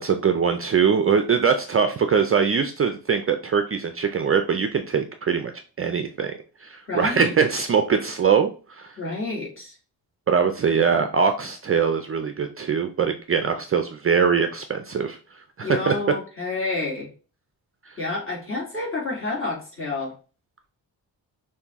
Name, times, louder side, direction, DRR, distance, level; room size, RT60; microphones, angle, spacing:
voice 1, 0.0-5.5 5.8-6.3 6.6-9.0 10.3-15.9 17.9-18.0, right 6 dB, 35° right, 7 dB, 0.4 m, -22 dB
voice 2, 6.9-7.3 9.0-9.7 15.6-17.1 18.0-20.1, left 3 dB, 30° left, -3 dB, 2.3 m, -29 dB
5.4 x 2.7 x 3.5 m, 0.36 s
wide cardioid pair, 125°, 40 cm